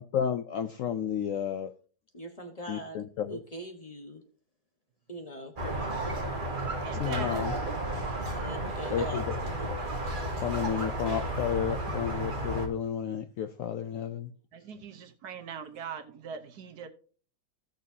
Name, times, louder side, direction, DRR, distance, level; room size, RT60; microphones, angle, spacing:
voice 1, 0.0-1.7 2.7-3.4 7.0-7.5 8.9-9.2 10.4-14.3, left 8 dB, 70° left, 0.8 m, -31 dB
voice 2, 2.1-3.0 3.3-4.2 5.1-6.2 7.2-7.3 8.4-9.7, equal, 25° left, 1.1 m, -42 dB
Squeak, 5.6-12.7, right 1 dB, 30° right, 1.5 m, -33 dB
voice 3, 6.8-7.4 14.5-16.9, right 6 dB, 70° right, 1.4 m, -41 dB
16.0 x 6.5 x 2.7 m
omnidirectional pair, 1.8 m